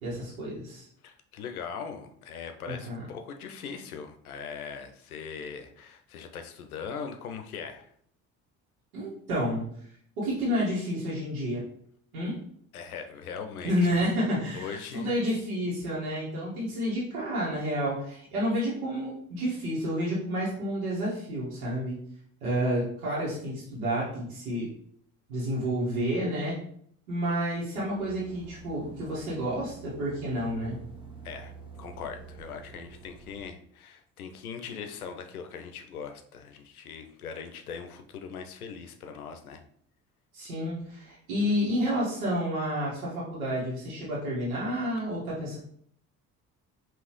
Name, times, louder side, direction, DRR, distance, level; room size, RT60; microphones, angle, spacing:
voice 1, 0.0-0.9 2.6-3.1 8.9-9.7 10.2-11.6 12.1-12.4 13.6-22.0 22.4-24.7 25.3-26.6 27.1-30.8 40.3-45.6, equal, 75° right, -7 dB, 1.6 m, -30 dB
voice 2, 1.0-7.9 12.7-13.7 14.5-15.1 31.2-31.5 31.8-39.6, left 6 dB, 85° left, 6 dB, 0.6 m, -40 dB
sound 1, 28.0-33.5, right 5 dB, 10° right, 1.2 m, -48 dB
5.4 x 2.9 x 3.0 m, 0.64 s
figure-of-eight pair, 55°, 43 cm